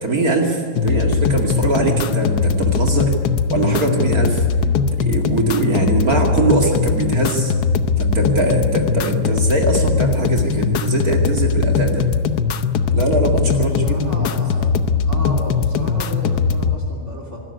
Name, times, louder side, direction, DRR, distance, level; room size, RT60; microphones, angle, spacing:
voice 1, 0.0-3.1 3.5-4.5 5.0-7.5 8.0-12.0 12.9-13.9, right 3 dB, 60° right, 1 dB, 2.7 m, -21 dB
sound 1, 0.8-16.8, left 5 dB, 70° left, 1.5 m, -19 dB
voice 2, 13.5-17.4, equal, 45° right, 0 dB, 3.3 m, -33 dB
24.5 x 13.5 x 9.6 m, 2.2 s
omnidirectional pair, 1.8 m